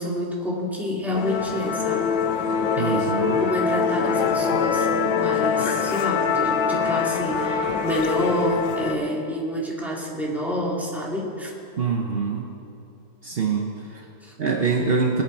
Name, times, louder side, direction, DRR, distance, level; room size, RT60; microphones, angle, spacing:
voice 1, 0.0-2.1 2.8-11.5 14.2-14.3, equal, ahead, -4 dB, 1.9 m, -28 dB
Musical instrument, 1.1-9.0, left 6 dB, 75° left, 1.5 m, -24 dB
voice 2, 2.8-3.4 11.8-12.5 13.2-14.1 14.4-15.2, right 5 dB, 65° right, 1 dB, 0.5 m, -24 dB
20.0 x 8.7 x 4.3 m, 2.7 s
omnidirectional pair, 2.2 m